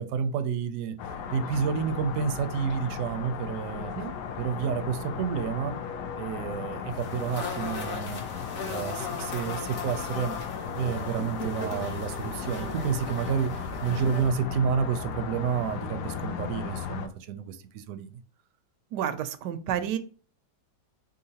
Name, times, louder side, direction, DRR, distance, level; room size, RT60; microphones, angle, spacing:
voice 1, 0.0-3.9 4.4-5.8 6.2-10.3 10.7-18.2, right 6 dB, 70° right, 0.8 m, -30 dB
sound 1, 1.0-17.1, left 7 dB, 80° left, 1.2 m, -36 dB
sound 2, 6.9-14.3, left 4 dB, 50° left, 1.1 m, -37 dB
voice 2, 18.9-20.0, right 9 dB, 90° right, 1.2 m, -30 dB
3.9 x 3.8 x 2.8 m
omnidirectional pair, 1.8 m